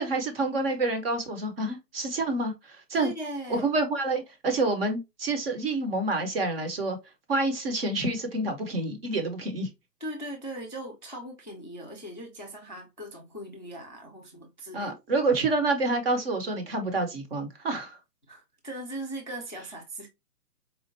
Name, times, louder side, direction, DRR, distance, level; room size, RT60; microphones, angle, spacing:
voice 1, 0.0-3.1 3.5-7.0 7.3-9.7 14.7-18.0, right 2 dB, 35° right, 1.0 m, -28 dB
voice 2, 2.9-3.7 10.0-14.9 18.3-20.1, right 1 dB, 30° left, 0.4 m, -39 dB
4.3 x 2.4 x 2.7 m
hypercardioid pair, 155°, 49 cm